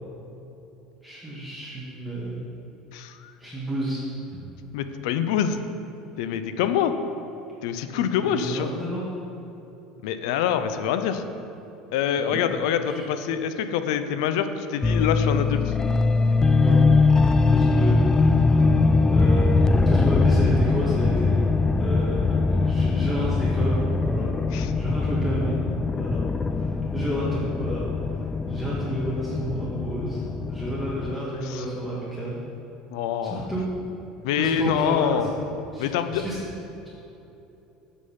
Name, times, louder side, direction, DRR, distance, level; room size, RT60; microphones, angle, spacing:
voice 1, 1.0-2.4 3.4-4.0 4.3-4.4 8.2-9.0 12.2-12.5 12.8-13.0 16.5-16.8 17.5-18.0 19.1-19.5 19.8-21.4 21.8-24.3 24.7-25.6 26.0-30.2 30.5-32.4 33.3-33.7 34.4-35.3 35.7-36.4, equal, ahead, -9 dB, 2.1 m, -31 dB
voice 2, 2.9-3.3 4.7-5.6 6.2-6.9 7.6-8.7 10.0-11.2 11.9-15.7 24.5-24.7 31.4-31.6 32.9-33.5 34.2-35.4 35.8-36.2, left 8 dB, 75° left, 9 dB, 0.6 m, -25 dB
sound 1, 14.8-31.2, left 3 dB, 20° left, 0.4 m, -22 dB
7.4 x 6.4 x 5.7 m, 3.0 s
hypercardioid pair, 80°, 3 cm